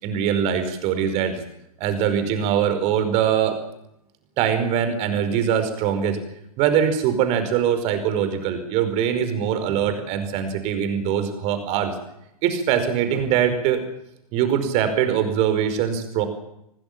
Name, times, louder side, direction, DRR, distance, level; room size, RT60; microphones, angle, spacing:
voice 1, 0.0-1.4 1.8-3.6 4.4-6.2 6.6-11.9 12.4-13.8 14.3-16.3, right 8 dB, 35° right, 9 dB, 5.0 m, -22 dB
25.5 x 19.0 x 7.4 m, 0.81 s
figure-of-eight pair, 105°, 19 cm